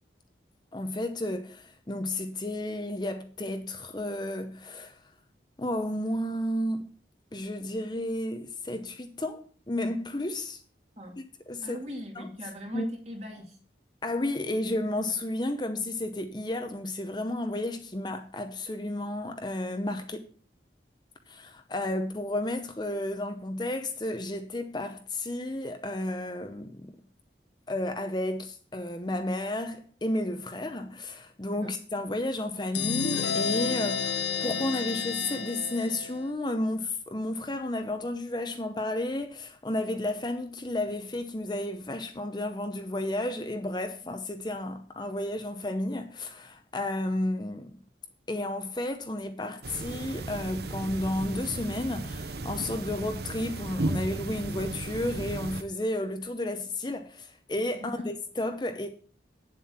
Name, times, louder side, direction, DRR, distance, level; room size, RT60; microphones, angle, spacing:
voice 1, 0.7-4.9 5.6-6.9 7.3-10.6 11.5-11.8 12.2-12.3 12.7-12.9 14.0-20.3 21.3-26.9 27.7-47.7 48.3-58.9, left 1 dB, 25° left, 0.8 m, -32 dB
voice 2, 11.6-13.6 31.5-31.8 57.7-58.1, equal, 35° right, 2.4 m, -41 dB
sound 1, 32.7-36.3, left 6 dB, 80° left, 0.8 m, -30 dB
sound 2, 49.6-55.6, right 2 dB, 65° right, 0.8 m, -35 dB
9.2 x 7.5 x 5.8 m
head